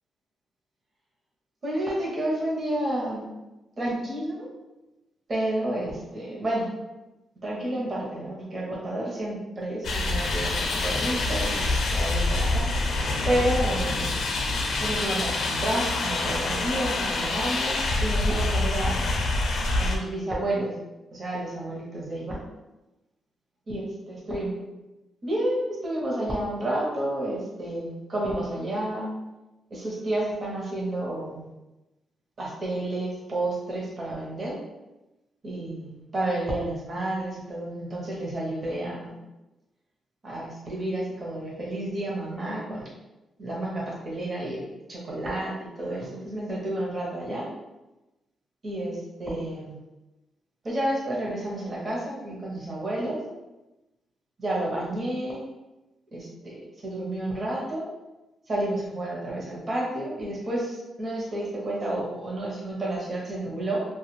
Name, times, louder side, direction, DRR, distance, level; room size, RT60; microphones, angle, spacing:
voice 1, 1.6-3.3 3.8-4.5 5.3-6.7 7.4-11.6 11.9-12.7 13.2-14.2 14.8-19.2 19.8-20.8 21.1-22.4 23.7-24.6 25.2-29.1 29.7-31.5 32.4-34.6 35.4-39.1 40.2-42.9 43.4-47.5 48.6-49.8 50.6-53.2 54.4-55.4 56.1-57.9 58.5-63.8, right 1 dB, 40° right, -4 dB, 0.8 m, -30 dB
sound 1, 9.8-20.0, left 2 dB, 70° left, 0.5 m, -26 dB
2.4 x 2.3 x 3.1 m, 1.0 s
cardioid pair, 105°, 0 cm